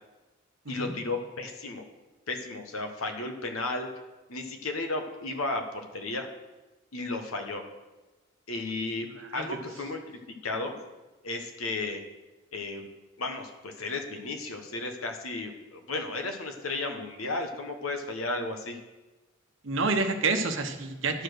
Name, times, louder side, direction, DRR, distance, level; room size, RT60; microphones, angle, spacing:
voice 1, 0.7-1.9 2.3-3.9 4.3-6.3 6.9-7.7 8.5-10.8 11.2-12.0 12.5-12.9 13.2-18.8, left 2 dB, 85° left, 5 dB, 1.2 m, -34 dB
voice 2, 19.6-21.2, right 3 dB, 65° right, 6 dB, 0.9 m, -28 dB
11.5 x 5.0 x 6.2 m, 1.1 s
head